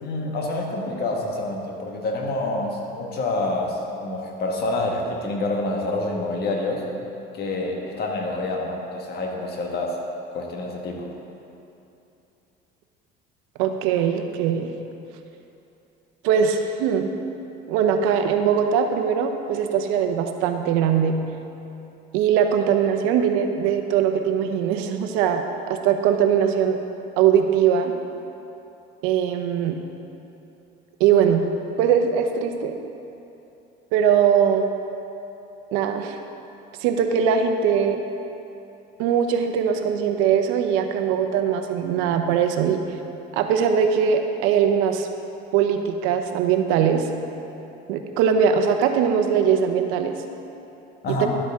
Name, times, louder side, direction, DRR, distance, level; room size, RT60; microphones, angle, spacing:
voice 1, 0.0-6.9 7.3-10.0 10.3-11.1 51.0-51.4, left 2 dB, 50° left, 0 dB, 1.6 m, -27 dB
voice 2, 13.6-14.7 16.2-17.1 17.7-21.2 22.1-26.8 27.2-27.9 29.0-29.8 31.0-31.4 31.8-32.8 33.9-34.7 35.7-36.2 36.8-38.0 39.0-42.8 43.3-45.1 45.5-47.1 47.9-50.1, right 8 dB, 80° right, 6 dB, 0.8 m, -21 dB
12.0 x 8.4 x 3.6 m, 2.8 s
cardioid pair, 110°, 21 cm